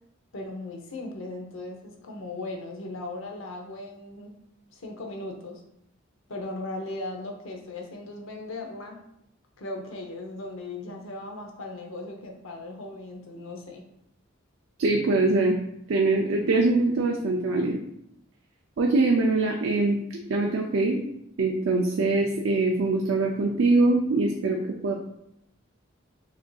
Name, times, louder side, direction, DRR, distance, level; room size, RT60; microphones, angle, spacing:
voice 1, 0.3-4.4 4.7-5.6 6.3-9.0 9.6-13.9, left 2 dB, 80° left, 2 dB, 0.7 m, -37 dB
voice 2, 14.8-15.6 15.9-17.8 18.8-20.0 20.3-21.0 21.4-24.9, right 2 dB, 75° right, 1 dB, 0.4 m, -23 dB
6.0 x 2.6 x 2.3 m, 0.78 s
head